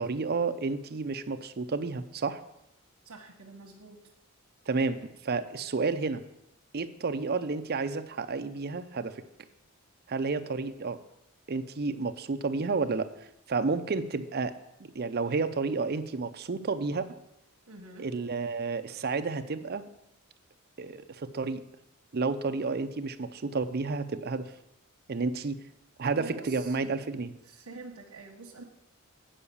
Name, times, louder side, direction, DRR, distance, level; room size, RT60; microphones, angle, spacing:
voice 1, 0.0-2.4 4.7-6.2 6.7-9.2 10.1-11.0 11.5-13.1 13.5-14.5 14.8-17.2 18.0-19.9 20.8-21.6 22.1-24.5 25.1-25.6 26.0-27.3, right 4 dB, 45° right, 9 dB, 0.5 m, -31 dB
voice 2, 3.0-4.0 17.7-18.1 26.1-26.8 27.2-28.6, right 3 dB, 80° right, -1 dB, 1.2 m, -47 dB
8.7 x 4.8 x 6.9 m, 0.84 s
head